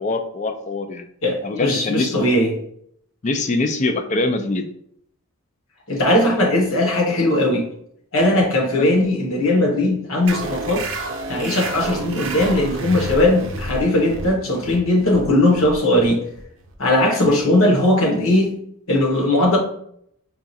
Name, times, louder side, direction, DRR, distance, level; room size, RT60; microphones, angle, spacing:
voice 1, 0.0-1.0 1.4-2.4 3.2-4.7 8.7-8.9 17.3-17.4, left 2 dB, 35° left, 7 dB, 0.3 m, -23 dB
voice 2, 1.2-2.5 5.9-7.7 8.1-10.8 11.3-16.2 16.8-18.5 18.9-19.6, left 1 dB, 65° left, 0 dB, 1.0 m, -18 dB
sound 1, 10.3-17.4, right 2 dB, 60° right, 0.5 m, -30 dB
4.6 x 2.4 x 2.7 m, 0.68 s
head